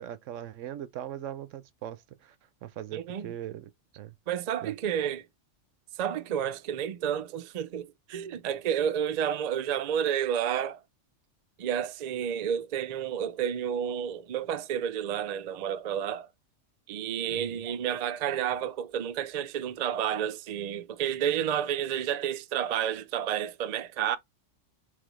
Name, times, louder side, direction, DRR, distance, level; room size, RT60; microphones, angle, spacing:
voice 1, 0.0-2.4 2.6-3.7 4.0-4.2 4.6-4.7 17.3-17.6, right 11 dB, 80° right, 0.9 m, -40 dB
voice 2, 2.9-3.3 4.3-5.2 6.0-10.8 11.6-16.3 16.9-24.2, right 9 dB, 65° right, 0.4 m, -30 dB
4.1 x 2.9 x 3.0 m
omnidirectional pair, 1.3 m